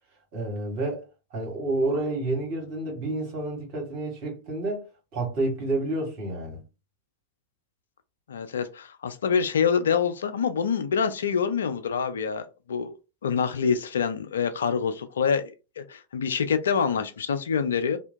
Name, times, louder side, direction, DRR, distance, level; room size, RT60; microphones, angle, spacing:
voice 1, 0.3-1.0 1.3-4.9 5.1-6.6, right 2 dB, 45° right, 1.4 m, -29 dB
voice 2, 8.3-12.9 13.2-18.0, left 6 dB, 65° left, 0.3 m, -26 dB
2.5 x 2.2 x 2.7 m
figure-of-eight pair, 90°, 0 cm